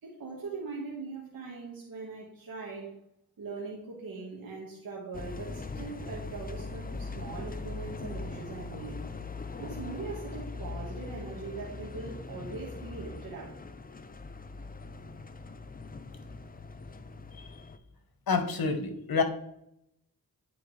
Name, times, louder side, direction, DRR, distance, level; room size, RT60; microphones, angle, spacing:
voice 1, 0.0-3.0 3.4-9.0 9.6-13.6, right 4 dB, 75° right, -4 dB, 1.6 m, -41 dB
sound 1, 5.1-17.8, left 3 dB, 25° left, 0.6 m, -41 dB
voice 2, 18.3-19.2, left 4 dB, 75° left, 7 dB, 1.1 m, -28 dB
10.0 x 4.7 x 3.2 m, 0.78 s
cardioid pair, 55°, 36 cm